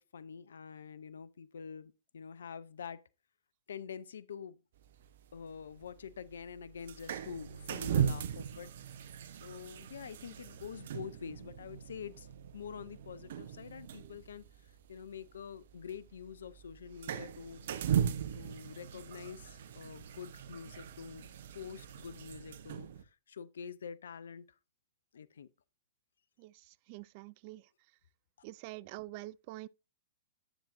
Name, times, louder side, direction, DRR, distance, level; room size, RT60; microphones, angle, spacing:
voice 1, 0.0-3.0 3.7-4.6 5.3-8.7 9.3-12.3 12.5-14.4 14.9-17.7 18.3-21.3 21.5-22.9 23.3-24.4 25.1-25.5, left 7 dB, 75° left, 0.5 m, -46 dB
sound 1, 4.8-23.0, right 8 dB, 60° right, 0.7 m, -39 dB
voice 2, 26.4-27.6 28.4-29.7, right 18 dB, 45° right, 0.3 m, -46 dB
9.8 x 7.3 x 2.6 m
hypercardioid pair, 115°, 0 cm